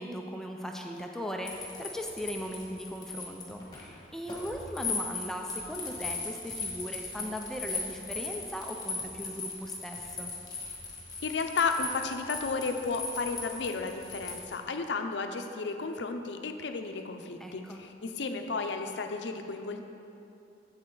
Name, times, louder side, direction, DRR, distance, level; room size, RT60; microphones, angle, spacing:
voice 1, 0.0-10.3 17.4-17.8, equal, 5° left, 1 dB, 0.4 m, -38 dB
sound 1, 1.5-14.6, left 4 dB, 25° left, 1.7 m, -38 dB
voice 2, 11.2-19.8, left 4 dB, 70° left, 6 dB, 0.6 m, -33 dB
8.6 x 7.9 x 3.9 m, 2.7 s
head